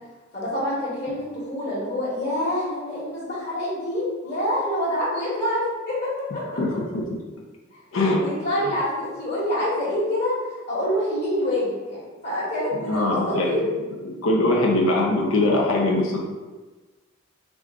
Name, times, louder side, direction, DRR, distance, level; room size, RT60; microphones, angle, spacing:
voice 1, 0.3-6.6 7.7-7.8 8.2-10.3 10.6-13.7, left 1 dB, 45° left, -12 dB, 1.5 m, -26 dB
voice 2, 6.6-7.2 7.9-8.2 12.7-13.5 14.0-16.2, left 2 dB, 85° left, -2 dB, 0.8 m, -22 dB
4.9 x 2.5 x 3.7 m, 1.3 s
head